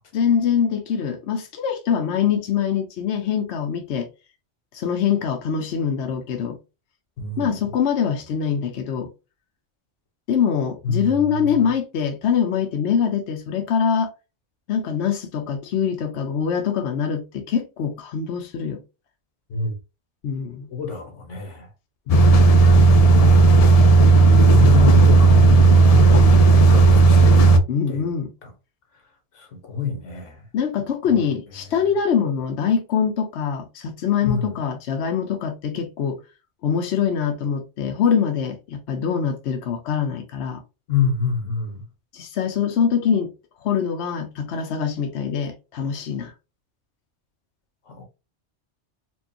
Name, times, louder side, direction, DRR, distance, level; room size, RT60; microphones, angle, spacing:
voice 1, 0.1-4.1 4.7-6.6 7.4-9.1 10.3-14.1 14.7-18.8 20.2-20.7 22.1-22.3 24.6-24.8 27.7-28.3 30.5-36.2 36.6-40.6 42.1-43.3 43.6-46.3, left 7 dB, 70° left, 1.0 m, -24 dB
voice 2, 7.2-7.6 10.8-11.4 19.5-19.7 20.7-21.7 23.1-23.9 24.5-26.2 26.7-27.6 27.9-28.1 28.4-28.5 29.4-30.4 31.0-31.1 34.2-34.5 40.9-41.8 47.9-48.0, left 5 dB, 90° left, 1.5 m, -27 dB
sound 1, 22.1-27.6, right 3 dB, 50° left, 0.4 m, -12 dB
4.5 x 2.5 x 2.7 m
omnidirectional pair, 1.2 m